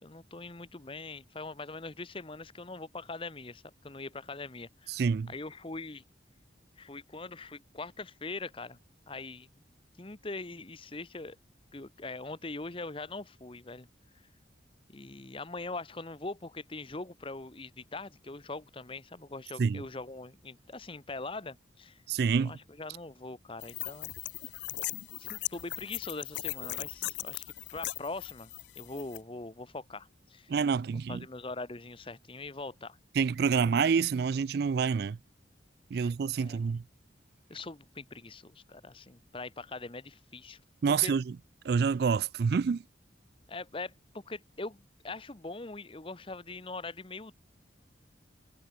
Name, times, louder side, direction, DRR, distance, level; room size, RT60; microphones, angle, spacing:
voice 1, 0.0-5.0 5.3-6.0 6.8-8.8 9.1-9.5 10.0-11.4 11.7-13.9 14.9-22.0 22.4-24.1 24.4-24.6 25.2-27.4 27.7-28.5 28.8-30.5 31.1-33.0 35.9-36.1 36.4-36.7 37.5-40.6 40.9-41.1 43.5-47.3, left 3 dB, 30° left, 1.0 m, -42 dB
voice 2, 4.9-5.3 19.6-19.8 22.1-22.6 30.5-31.2 33.2-35.2 35.9-36.8 40.8-41.3 41.6-42.8, right 6 dB, 55° right, 0.3 m, -27 dB
sound 1, 23.6-29.2, left 16 dB, 70° left, 0.4 m, -38 dB
head